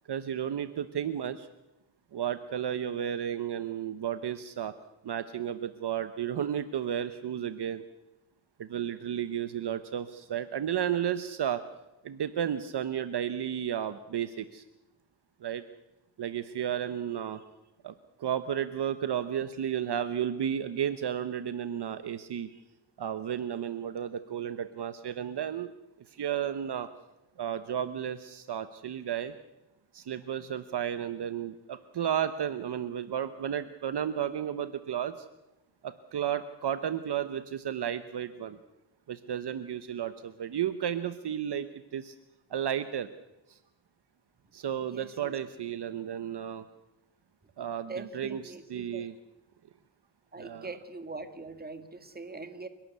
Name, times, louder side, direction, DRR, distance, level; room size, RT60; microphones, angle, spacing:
voice 1, 0.1-1.5 2.1-4.7 5.0-7.8 8.6-11.6 12.0-14.6 15.4-15.6 16.2-17.4 17.8-17.9 18.2-22.6 23.0-25.7 26.1-26.9 27.4-29.3 29.9-35.3 35.8-38.6 39.1-42.1 42.5-43.1 43.5-43.6 44.5-46.6 47.6-49.1 50.4-50.7, right 9 dB, 55° right, 11 dB, 1.0 m, -33 dB
voice 2, 44.9-45.3 47.9-49.1 50.3-52.7, right 3 dB, 20° right, 9 dB, 2.0 m, -42 dB
28.5 x 12.0 x 8.3 m, 0.96 s
cardioid pair, 105°, 47 cm